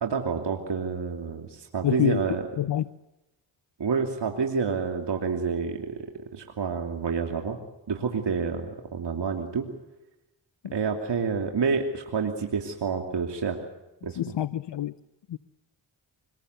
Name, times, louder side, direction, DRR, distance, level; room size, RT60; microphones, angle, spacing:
voice 1, 0.0-2.4 3.8-6.0 6.3-7.6 7.9-9.7 10.7-13.6 14.0-14.2, right 5 dB, 65° right, 3 dB, 2.9 m, -28 dB
voice 2, 1.8-2.2 2.6-2.9 10.6-10.7 14.2-15.0 15.3-15.4, left 11 dB, 65° left, 15 dB, 0.8 m, -26 dB
25.5 x 21.0 x 8.0 m, 0.97 s
cardioid pair, 50°, 45 cm